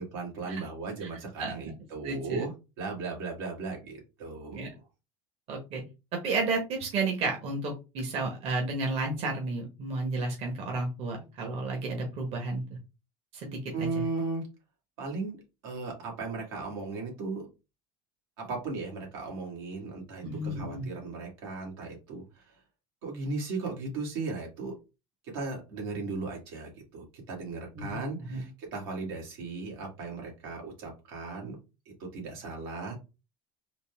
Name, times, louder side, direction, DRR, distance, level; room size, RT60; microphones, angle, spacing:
voice 1, 0.0-4.8 13.7-14.4 15.0-15.3 15.6-17.5 18.4-22.4 23.0-24.7 25.3-31.6 31.9-33.0, right 3 dB, 90° right, -1 dB, 1.8 m, -36 dB
voice 2, 2.0-2.4 4.5-4.7 5.5-5.8 6.2-12.6 13.4-13.9 20.2-20.9 27.8-28.0 28.3-28.4, right 3 dB, 55° right, 1 dB, 1.2 m, -32 dB
3.9 x 2.2 x 3.4 m, 0.28 s
supercardioid pair, 125°, 12 cm